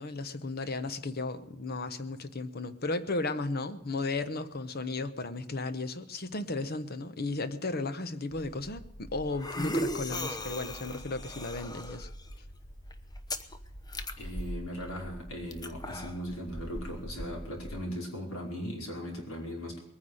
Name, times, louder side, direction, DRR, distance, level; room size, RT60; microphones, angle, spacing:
voice 1, 0.0-12.1, left 3 dB, 45° left, 1.0 m, -35 dB
sound 1, 8.3-17.8, equal, 20° left, 0.9 m, -39 dB
voice 2, 14.2-19.8, equal, 75° left, 5.1 m, -38 dB
21.0 x 9.7 x 6.4 m
head